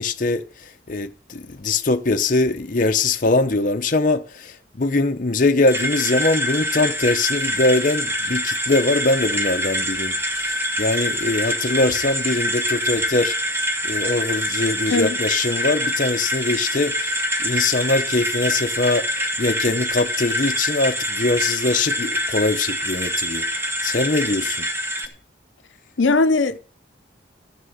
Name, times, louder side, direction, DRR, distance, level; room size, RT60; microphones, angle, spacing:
voice 1, 0.0-23.5 23.8-24.7, left 3 dB, 45° left, 0.8 m, -22 dB
sound 1, 5.7-25.1, equal, 15° right, 1.3 m, -25 dB
voice 2, 26.0-26.6, left 3 dB, 85° left, 0.7 m, -18 dB
14.0 x 6.4 x 9.3 m
head